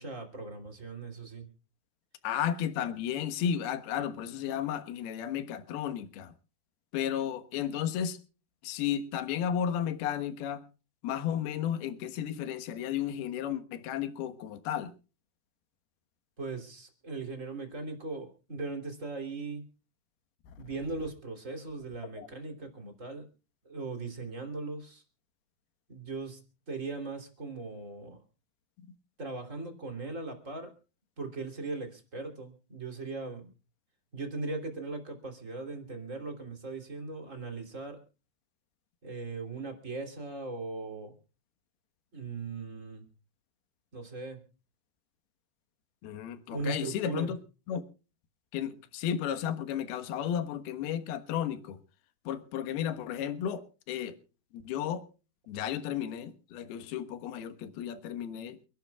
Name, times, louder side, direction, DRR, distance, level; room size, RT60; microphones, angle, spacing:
voice 1, 0.0-1.5 16.4-19.7 20.6-23.3 23.6-25.0 25.9-26.4 26.7-28.2 29.2-30.7 31.2-33.5 34.1-38.0 39.0-41.1 42.1-43.1 43.9-44.4 46.5-47.3, right 3 dB, 20° right, 2.9 m, -39 dB
voice 2, 2.2-6.3 6.9-8.2 8.6-10.6 11.0-14.9 20.5-20.6 22.2-22.3 28.8-28.9 46.0-47.4 47.7-47.8 48.5-51.8 52.2-54.2 54.5-55.0 55.5-58.6, left 9 dB, 70° left, 3.1 m, -33 dB
29.5 x 11.5 x 2.4 m
omnidirectional pair, 4.9 m